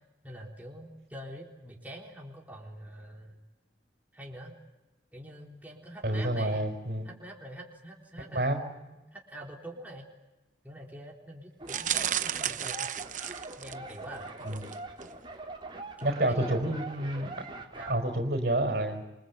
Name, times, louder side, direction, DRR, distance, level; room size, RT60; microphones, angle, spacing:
voice 1, 0.2-3.4 4.1-4.6 5.1-6.7 7.1-10.1 10.6-12.9 13.6-14.3 16.0-16.8 17.6-18.1, right 1 dB, 10° right, -2 dB, 3.8 m, -45 dB
voice 2, 6.0-7.1 8.3-8.6 14.4-14.6 16.0-17.3 17.9-19.1, right 1 dB, 60° right, 4 dB, 4.5 m, -29 dB
sound 1, 11.6-17.9, right 2 dB, 30° right, 3.4 m, -43 dB
sound 2, 11.7-14.0 14.5-14.8 15.0-15.1, right 10 dB, 45° right, 0.9 m, -33 dB
28.0 x 24.0 x 8.1 m, 1.0 s
head